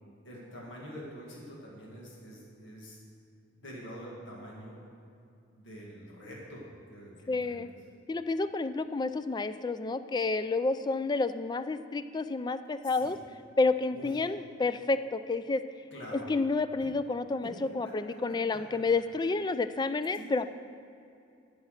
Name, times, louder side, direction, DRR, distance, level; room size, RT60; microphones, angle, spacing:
voice 1, 0.2-3.0 3.6-4.8 5.5-7.6 12.8-13.1 13.9-14.1 15.9-16.3 17.4-17.5 17.8-18.8 20.1-20.3, equal, 65° left, -4 dB, 2.0 m, -46 dB
voice 2, 7.3-7.7 8.1-13.2 13.6-15.6 16.1-20.5, left 3 dB, 20° left, 12 dB, 0.3 m, -30 dB
13.0 x 6.1 x 6.4 m, 2.5 s
head